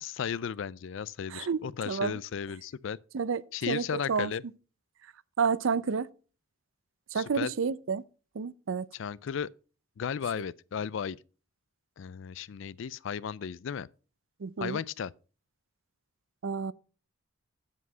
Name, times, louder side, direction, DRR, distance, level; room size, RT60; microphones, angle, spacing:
voice 1, 0.0-3.0 3.5-4.4 7.1-7.5 8.9-9.5 10.0-11.2 12.0-13.9 14.6-15.1, left 7 dB, 60° left, 0.3 m, -35 dB
voice 2, 1.9-2.2 3.1-3.4 3.7-4.3 5.4-6.1 7.1-8.0 8.4-8.9 14.4-14.8 16.4-16.7, right 5 dB, 65° right, 0.5 m, -29 dB
8.2 x 7.5 x 5.4 m
head